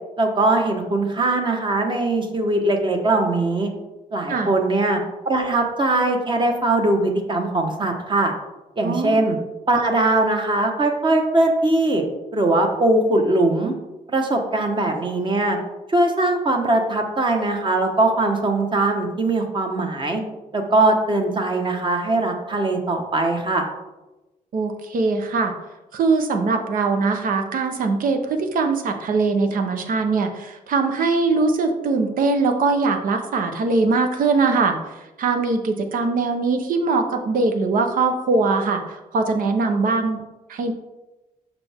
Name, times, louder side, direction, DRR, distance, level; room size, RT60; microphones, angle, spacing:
voice 1, 0.2-3.7 4.1-5.0 5.2-8.3 8.8-9.4 9.7-12.0 12.3-13.7 14.1-15.6 15.9-20.2 20.5-23.7, right 2 dB, 35° right, 3 dB, 1.3 m, -21 dB
voice 2, 8.8-9.3 24.5-25.5 25.9-34.8 35.2-40.2 40.5-40.7, right 4 dB, 70° right, 6 dB, 1.0 m, -21 dB
6.8 x 5.7 x 3.6 m, 1.1 s
cardioid pair, 90°, 15 cm